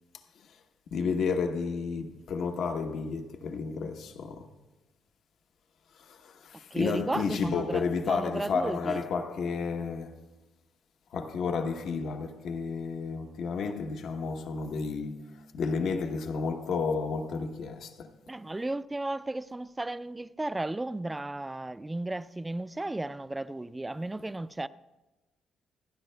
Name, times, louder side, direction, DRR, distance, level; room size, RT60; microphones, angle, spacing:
voice 1, 0.9-4.5 5.9-10.3 11.1-18.1, left 5 dB, 70° left, 0.9 m, -32 dB
voice 2, 6.7-9.0 18.3-24.7, right 2 dB, 15° right, 0.4 m, -34 dB
27.0 x 10.0 x 2.2 m
cardioid pair, 90°, 0 cm